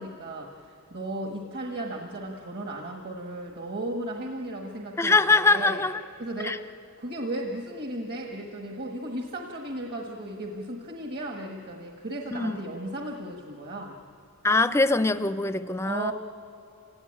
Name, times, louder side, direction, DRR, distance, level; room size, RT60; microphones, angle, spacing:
voice 1, 0.0-5.8 6.2-6.6 7.0-14.0 15.8-16.1, right 1 dB, 50° right, 2 dB, 1.5 m, -35 dB
voice 2, 5.0-6.0 6.4-6.6 12.3-12.6 14.4-16.1, left 3 dB, 10° left, 13 dB, 0.5 m, -23 dB
29.0 x 17.5 x 8.7 m, 2.6 s
head